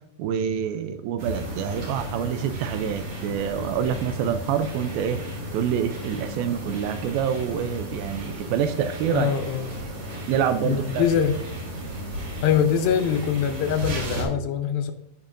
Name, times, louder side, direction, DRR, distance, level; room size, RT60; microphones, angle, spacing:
voice 1, 0.2-5.2 5.5-9.3 10.3-11.1, right 8 dB, 80° right, 10 dB, 2.2 m, -26 dB
sound 1, 1.2-14.2, equal, 45° right, 3.9 m, -34 dB
voice 2, 9.1-9.8 10.6-11.4 12.4-14.9, left 8 dB, 80° left, 7 dB, 2.4 m, -23 dB
15.5 x 5.4 x 2.5 m, 0.86 s
omnidirectional pair, 4.5 m